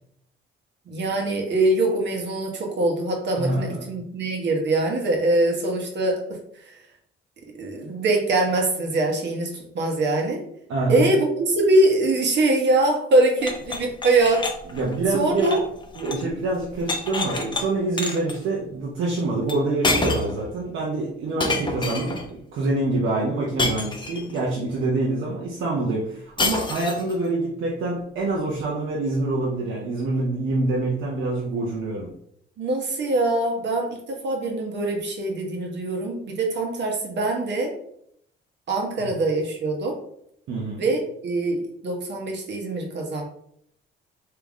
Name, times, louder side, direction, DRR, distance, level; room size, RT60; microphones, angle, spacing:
voice 1, 0.9-6.2 7.6-10.4 10.9-14.4 15.1-15.6 32.6-37.7 38.7-40.0 40.8-43.2, right 2 dB, 60° right, 2 dB, 1.1 m, -23 dB
voice 2, 3.4-4.0 10.7-11.1 14.7-15.6 15.9-32.1 39.0-39.1 40.5-40.8, right 2 dB, 80° right, -4 dB, 0.8 m, -26 dB
sound 1, 13.4-16.3 16.6-17.6 18.0-18.4 19.5-19.6 19.8-20.4 21.4-22.3 23.6-24.4 26.4-27.1, left 2 dB, 25° left, 0.7 m, -28 dB
3.5 x 2.9 x 3.5 m, 0.71 s
cardioid pair, 90°, 20 cm